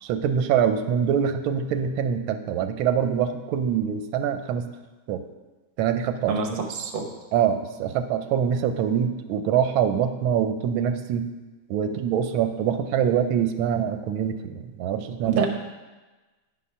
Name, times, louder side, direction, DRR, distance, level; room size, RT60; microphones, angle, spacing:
voice 1, 0.0-4.6 5.1-5.2 5.8-6.6 7.3-11.2 11.7-15.5, right 8 dB, 90° right, 8 dB, 1.4 m, -24 dB
voice 2, 6.3-7.1 15.3-15.5, right 4 dB, 45° right, 3 dB, 0.7 m, -27 dB
9.5 x 4.3 x 5.5 m, 1.2 s
omnidirectional pair, 2.2 m